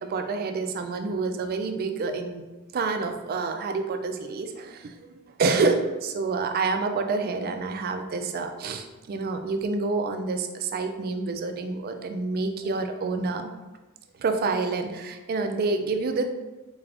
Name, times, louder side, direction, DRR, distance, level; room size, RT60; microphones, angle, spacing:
voice 1, 0.0-2.5 2.7-5.1 5.4-13.5 14.2-16.2, right 3 dB, 45° right, 7 dB, 0.3 m, -28 dB
3.8 x 3.3 x 2.5 m, 1.1 s
head